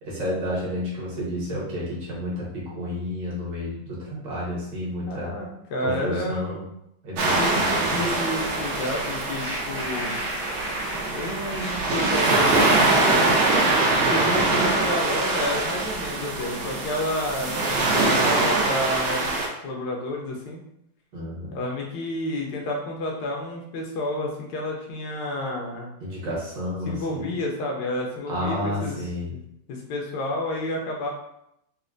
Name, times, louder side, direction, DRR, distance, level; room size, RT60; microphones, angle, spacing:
voice 1, 0.0-5.3 5.8-6.6 7.0-8.1 21.1-21.5 26.0-27.3 28.3-29.3, left 1 dB, 65° right, -6 dB, 1.8 m, -31 dB
voice 2, 5.1-6.6 7.3-10.2 11.1-13.4 13.9-19.4 19.6-20.6 21.5-25.9 26.8-29.4 29.7-31.1, left 1 dB, 70° left, -1 dB, 1.1 m, -30 dB
sound 1, 7.2-19.5, right 2 dB, 85° right, 1.5 m, -23 dB
sound 2, 8.7-13.5, equal, 40° right, 0.4 m, -36 dB
4.1 x 2.2 x 2.5 m, 0.78 s
omnidirectional pair, 2.2 m